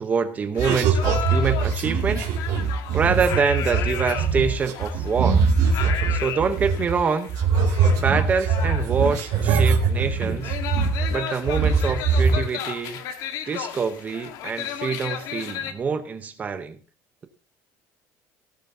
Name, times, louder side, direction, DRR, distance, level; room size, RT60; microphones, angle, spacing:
voice 1, 0.0-2.3 2.9-5.5 6.1-7.3 8.0-10.6 11.1-13.0 13.5-16.8, right 5 dB, 20° right, 10 dB, 0.8 m, -25 dB
sound 1, 0.6-15.7, left 10 dB, 55° left, 1.5 m, -34 dB
sound 2, 0.6-7.0 7.3-11.2 11.5-12.4, right 5 dB, 55° right, 2.3 m, -22 dB
18.0 x 8.9 x 2.7 m, 0.37 s
cardioid pair, 170°, 7 cm